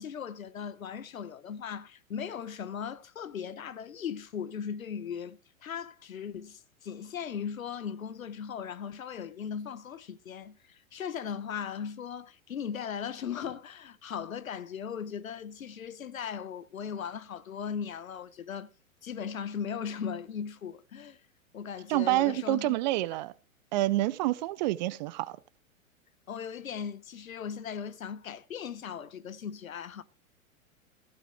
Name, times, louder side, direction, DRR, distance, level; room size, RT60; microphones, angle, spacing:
voice 1, 0.0-18.7 19.0-21.2 21.5-22.7 26.3-30.0, left 7 dB, 70° left, 1.2 m, -38 dB
voice 2, 21.9-23.3 23.7-25.4, right 17 dB, 35° right, 0.5 m, -27 dB
15.5 x 7.4 x 4.8 m
figure-of-eight pair, 105°, 42 cm